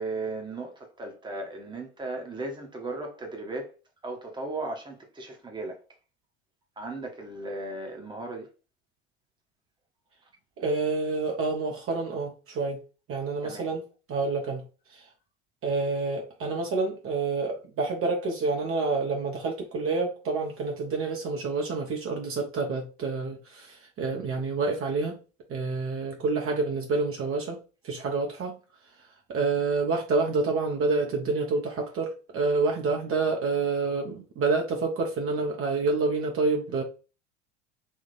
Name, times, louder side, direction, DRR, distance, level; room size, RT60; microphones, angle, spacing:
voice 1, 0.0-3.7 4.0-5.8 6.8-8.5 13.4-13.7, right 2 dB, 10° right, 1.2 m, -36 dB
voice 2, 10.6-12.8 13.1-13.8 14.1-14.6 14.9-15.0 15.6-25.2 25.5-27.6 27.8-28.6 29.3-36.8, right 3 dB, 35° right, 1.1 m, -28 dB
3.6 x 2.8 x 4.1 m
figure-of-eight pair, 75°, 37 cm